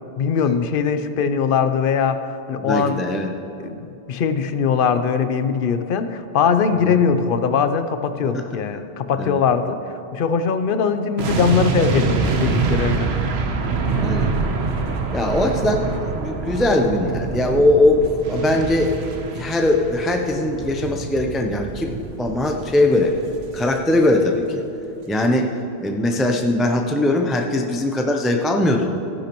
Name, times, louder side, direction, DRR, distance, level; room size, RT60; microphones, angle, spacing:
voice 1, 0.2-2.2 2.5-3.0 3.6-9.8 10.1-13.1, left 6 dB, 60° left, 11 dB, 0.7 m, -21 dB
voice 2, 2.6-3.3 6.8-7.0 8.3-8.4 9.1-9.4 14.0-14.3 15.1-19.1 19.3-21.9 22.2-23.2 23.5-24.6 25.1-25.5 25.8-28.9, left 1 dB, ahead, 2 dB, 0.3 m, -20 dB
sound 1, 11.2-24.3 24.6-24.8, right 4 dB, 75° right, 1.1 m, -25 dB
14.5 x 10.5 x 3.0 m, 2.9 s
omnidirectional pair, 1.1 m